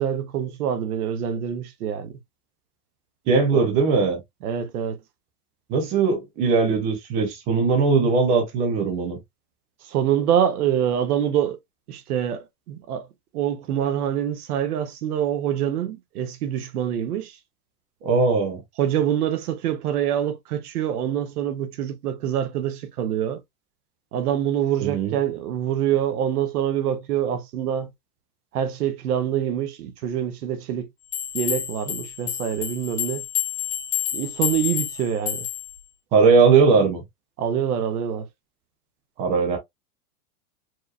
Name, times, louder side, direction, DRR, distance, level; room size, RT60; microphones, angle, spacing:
voice 1, 0.0-2.1 3.5-3.6 4.4-5.0 9.8-11.6 11.9-13.1 13.3-17.4 18.8-23.4 24.1-27.9 28.5-30.9 31.3-33.2 34.1-35.5 37.4-38.3, right 9 dB, 80° right, 1.1 m, -25 dB
voice 2, 3.3-4.2 5.7-9.2 18.0-18.6 24.8-25.2 36.1-37.0 39.2-39.6, right 4 dB, 15° right, 0.5 m, -19 dB
sound 1, 31.1-35.8, left 12 dB, 30° left, 2.2 m, -29 dB
4.7 x 3.0 x 2.4 m
supercardioid pair, 180°, 45 cm